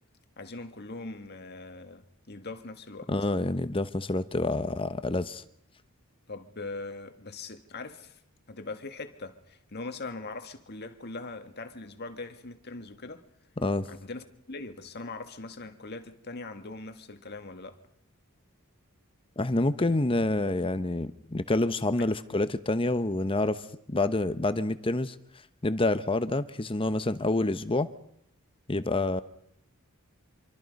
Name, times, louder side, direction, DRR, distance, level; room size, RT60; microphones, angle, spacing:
voice 1, 0.4-3.1 6.3-8.2 8.5-13.2 13.8-17.8 19.8-20.0, left 3 dB, 50° left, 1.9 m, -41 dB
voice 2, 3.1-5.4 13.6-13.9 19.4-25.1 25.6-27.9 28.7-29.2, left 2 dB, 25° left, 0.9 m, -27 dB
26.5 x 24.5 x 5.4 m
head